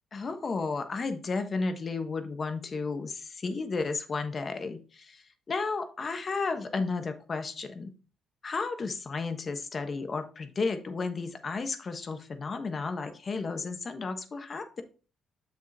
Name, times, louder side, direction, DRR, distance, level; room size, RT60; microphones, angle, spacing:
voice 1, 0.1-7.9 8.4-14.8, left 4 dB, 40° left, 7 dB, 1.2 m, -33 dB
7.6 x 6.5 x 2.8 m, 0.36 s
cardioid pair, 90°, 0 cm